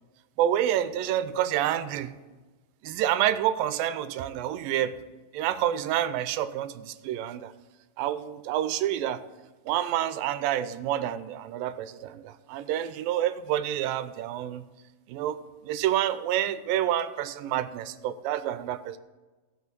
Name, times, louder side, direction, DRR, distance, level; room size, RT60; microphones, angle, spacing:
voice 1, 0.4-2.1 2.8-4.9 5.3-7.5 8.0-9.2 9.7-14.6 15.1-15.4 15.6-19.0, right 11 dB, 80° right, 12 dB, 2.3 m, -28 dB
16.0 x 6.1 x 5.2 m, 1.2 s
omnidirectional pair, 4.2 m